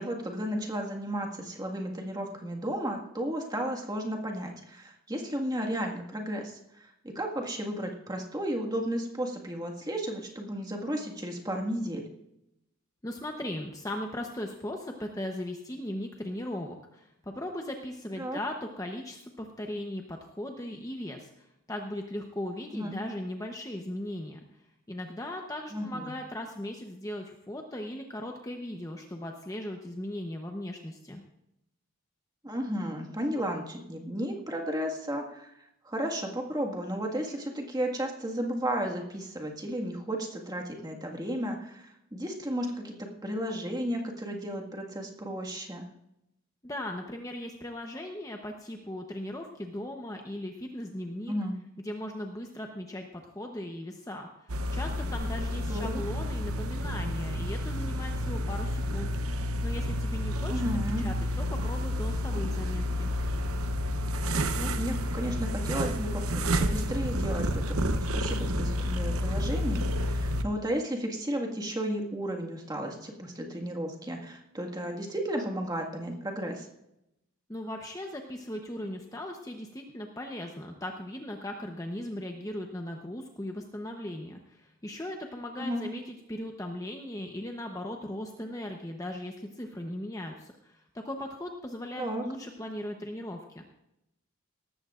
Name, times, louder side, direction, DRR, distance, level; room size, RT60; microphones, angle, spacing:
voice 1, 0.0-12.1 18.2-18.4 22.7-22.9 25.7-26.1 32.4-45.9 51.3-51.6 55.7-56.0 60.5-61.1 64.5-76.7 85.6-85.8 92.0-92.2, equal, 15° right, 1 dB, 1.7 m, -33 dB
voice 2, 13.0-24.4 24.9-31.2 46.6-51.3 51.8-59.1 59.6-60.5 61.0-63.1 77.5-93.6, left 1 dB, 15° left, 2 dB, 0.9 m, -38 dB
sound 1, 54.5-70.4, equal, 80° right, 0.9 m, -30 dB
18.5 x 14.5 x 2.5 m, 0.84 s
head